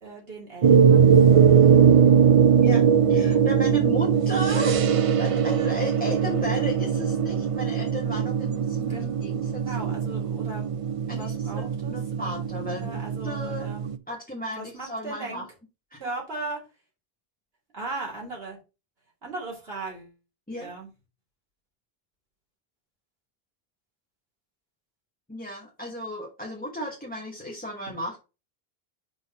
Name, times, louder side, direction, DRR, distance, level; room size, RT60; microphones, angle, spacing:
voice 1, 0.0-1.2 8.9-9.3 9.6-10.6 11.2-12.3 12.8-14.0 14.5-15.4 16.0-16.6 17.7-18.6 19.2-20.1 20.6-20.9, right 2 dB, 75° right, -3 dB, 2.7 m, -37 dB
sound 1, 0.6-14.0, right 7 dB, 50° right, 0.4 m, -21 dB
voice 2, 2.6-4.8 5.2-9.9 11.1-13.7 14.1-15.5 15.9-16.1 20.5-20.7 25.3-28.2, equal, 10° left, -1 dB, 1.1 m, -34 dB
5.3 x 4.4 x 5.3 m, 0.30 s
omnidirectional pair, 1.0 m